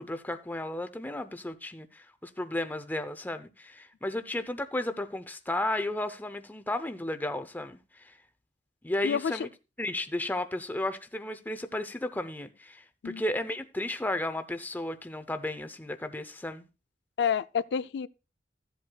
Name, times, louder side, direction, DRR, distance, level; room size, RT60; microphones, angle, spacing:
voice 1, 0.0-8.1 8.8-9.5 9.8-16.7, left 1 dB, 10° left, 0.6 m, -34 dB
voice 2, 17.2-18.1, left 7 dB, 65° left, 0.4 m, -28 dB
15.0 x 7.7 x 2.2 m
head